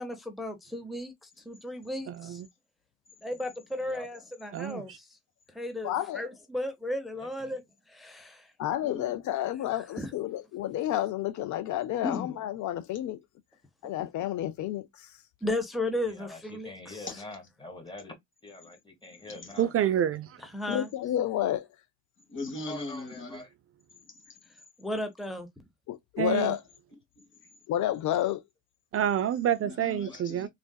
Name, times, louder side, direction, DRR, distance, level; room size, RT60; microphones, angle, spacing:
voice 1, 0.0-2.4 3.2-5.1 5.5-7.6 7.9-8.5 10.0-10.1 15.4-17.1 20.5-20.9 24.8-25.5, left 1 dB, ahead, 0.7 m, -35 dB
voice 2, 2.1-2.5 4.5-5.0 19.6-20.4 26.2-26.5 28.9-30.5, right 10 dB, 50° right, 0.4 m, -28 dB
voice 3, 5.8-6.2 8.6-13.2 13.8-15.2 20.7-21.7 25.9-26.6 27.7-28.4, left 12 dB, 70° left, 0.5 m, -30 dB
voice 4, 7.2-7.5 16.1-18.2 18.4-19.7 22.7-23.5 29.8-30.5, left 2 dB, 15° left, 1.5 m, -45 dB
voice 5, 8.8-9.1 12.0-12.4 14.0-14.1 17.1-17.3 19.1-19.6 22.3-23.4 24.0-24.4 27.2-27.6 29.6-30.5, left 3 dB, 40° left, 1.3 m, -39 dB
3.6 x 2.4 x 2.2 m
cardioid pair, 90°, 30 cm